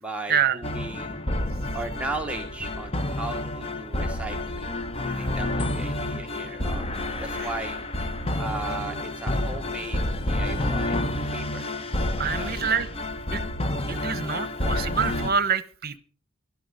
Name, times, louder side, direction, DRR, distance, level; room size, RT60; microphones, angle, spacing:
voice 1, 0.0-1.2 1.7-4.7 5.0-6.9 7.2-7.8 8.4-11.7 12.2-12.6 13.4-13.5, right 2 dB, 5° right, 2 dB, 1.1 m, -36 dB
sound 1, 0.6-15.3, left 1 dB, 30° left, 0.8 m, -29 dB
voice 2, 12.2-12.9 13.3-13.4 13.9-16.0, right 7 dB, 50° right, 16 dB, 1.0 m, -26 dB
15.5 x 11.5 x 5.3 m, 0.39 s
head